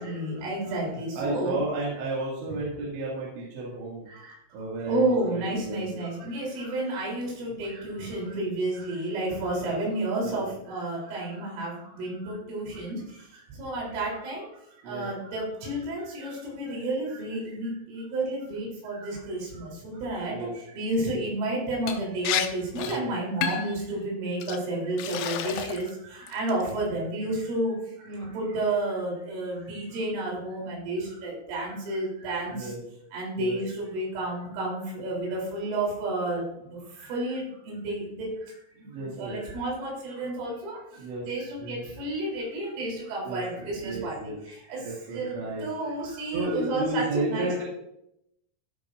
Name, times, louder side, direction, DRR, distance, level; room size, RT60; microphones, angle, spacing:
voice 1, 0.0-1.6 2.5-2.6 4.1-4.4 4.9-13.0 13.6-14.5 14.9-20.4 20.7-27.7 28.0-32.7 33.1-36.4 36.7-38.3 39.0-40.8 41.3-44.1 44.5-44.8 45.1-45.4 45.6-47.6, right 2 dB, 85° right, -2 dB, 6.0 m, -31 dB
voice 2, 1.2-4.1 4.5-5.8 7.5-7.6 10.2-10.4 14.8-15.1 20.3-20.5 22.9-23.1 26.6-26.8 32.5-32.8 33.4-33.6 38.8-39.4 41.0-41.3 41.6-41.8 43.3-44.4 44.8-45.7 46.3-47.6, right 2 dB, 70° right, -4 dB, 4.3 m, -33 dB
Liquid, 21.9-22.0 22.2-22.5 22.8-23.0 23.4-23.8 24.4-24.6 25.0-25.9 26.3-26.7, left 10 dB, 85° left, 3.3 m, -30 dB
15.0 x 8.6 x 2.5 m, 0.79 s
omnidirectional pair, 5.5 m